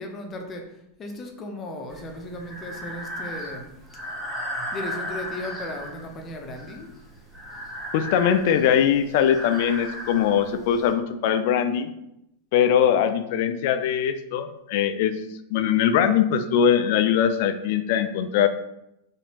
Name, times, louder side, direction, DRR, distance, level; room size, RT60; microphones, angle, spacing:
voice 1, 0.0-3.7 4.7-6.9, left 1 dB, 25° left, 3 dB, 0.7 m, -36 dB
Breathing, 1.9-10.9, equal, ahead, 1.1 m, -36 dB
voice 2, 7.9-11.9 12.5-15.1 15.5-18.5, left 8 dB, 50° left, 9 dB, 0.3 m, -21 dB
4.1 x 2.6 x 2.9 m, 0.82 s
figure-of-eight pair, 90°, 0 cm